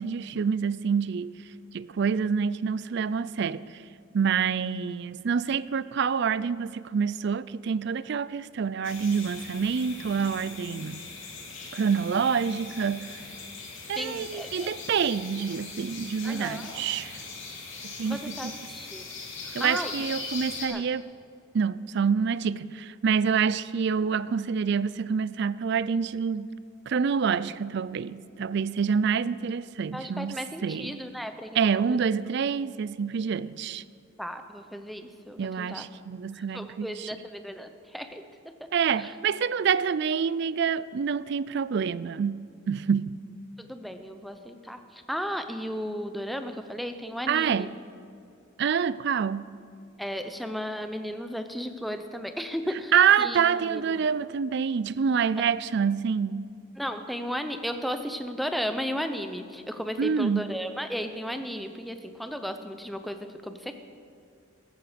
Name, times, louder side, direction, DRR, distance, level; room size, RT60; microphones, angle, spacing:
voice 1, 0.0-1.3 1.7-3.7 4.1-11.0 11.7-13.1 13.9-17.2 17.8-18.4 19.5-21.1 21.5-26.5 26.9-30.4 30.6-31.0 31.5-33.8 35.4-37.1 38.7-43.2 47.3-47.7 48.6-49.5 52.9-56.5 60.0-60.5, right 6 dB, 55° right, 0.4 m, -27 dB
sound 1, 8.8-20.7, left 4 dB, 70° left, 3.1 m, -40 dB
voice 2, 14.0-14.7 16.2-16.7 18.1-19.0 19.4-20.0 20.7-20.9 29.9-31.6 31.8-32.0 34.2-35.9 36.3-38.3 38.6-38.7 39.0-39.1 43.6-47.7 50.0-54.2 55.4-55.5 56.8-63.7, equal, ahead, 0.7 m, -35 dB
14.5 x 14.0 x 5.1 m
head